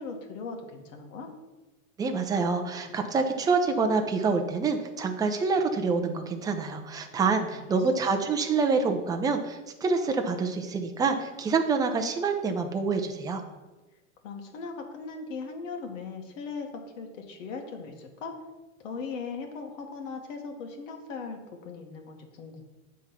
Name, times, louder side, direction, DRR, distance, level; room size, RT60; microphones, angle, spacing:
voice 1, 0.0-1.3 7.5-7.6 14.2-18.4 18.8-22.6, left 4 dB, 65° left, 3 dB, 1.7 m, -39 dB
voice 2, 2.0-13.4, right 4 dB, 10° right, 5 dB, 0.5 m, -27 dB
8.8 x 3.7 x 5.7 m, 1.1 s
supercardioid pair, 140°, 40 cm